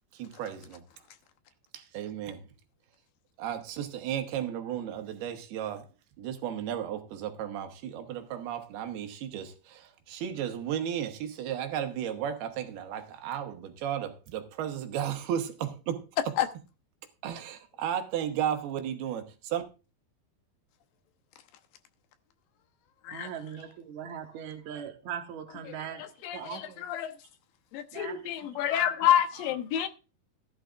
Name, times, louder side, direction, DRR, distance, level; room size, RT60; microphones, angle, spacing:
voice 1, 0.1-0.8 1.7-2.5 3.4-5.9 6.2-16.1 17.2-19.6, right 9 dB, 85° right, 3.1 m, -34 dB
voice 2, 23.1-26.1 26.3-26.8 27.9-28.2 28.5-28.8, right 8 dB, 65° right, 2.2 m, -40 dB
voice 3, 25.6-27.2 27.7-29.9, left 11 dB, 75° left, 2.6 m, -29 dB
15.5 x 11.0 x 2.5 m
omnidirectional pair, 4.4 m